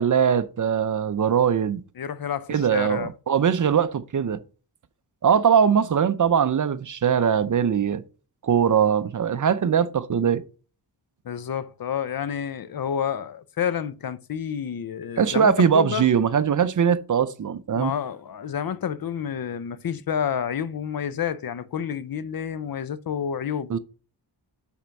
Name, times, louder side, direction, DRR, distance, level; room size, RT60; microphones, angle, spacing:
voice 1, 0.0-1.8 2.5-4.4 5.2-8.0 8.4-10.4 15.2-17.9 23.7-23.8, right 7 dB, 45° right, 0.6 m, -21 dB
voice 2, 2.0-3.1 11.2-16.1 17.7-23.8, left 8 dB, 55° left, 0.7 m, -29 dB
5.7 x 4.4 x 5.2 m
wide cardioid pair, 80°, 43 cm